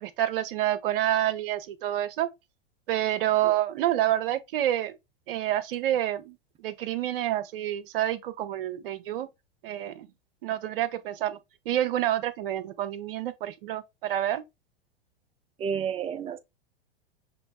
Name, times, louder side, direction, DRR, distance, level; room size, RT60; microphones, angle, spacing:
voice 1, 0.0-2.3 2.9-4.9 5.3-6.4 6.6-9.3 9.6-10.1 10.4-11.4 11.7-14.4, right 12 dB, 60° right, 0.7 m, -28 dB
voice 2, 15.6-16.4, right 7 dB, 20° right, 0.5 m, -30 dB
6.1 x 3.0 x 2.2 m
figure-of-eight pair, 95°, 31 cm